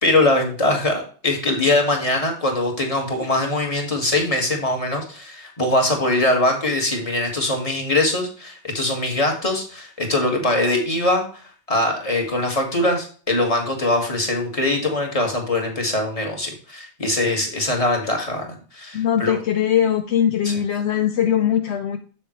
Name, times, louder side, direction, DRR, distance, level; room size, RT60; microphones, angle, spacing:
voice 1, 0.0-19.4 20.4-20.6, left 2 dB, 30° left, 2 dB, 1.8 m, -22 dB
voice 2, 18.9-22.0, left 9 dB, 75° left, 7 dB, 0.9 m, -20 dB
7.1 x 7.0 x 3.0 m, 0.40 s
omnidirectional pair, 1.2 m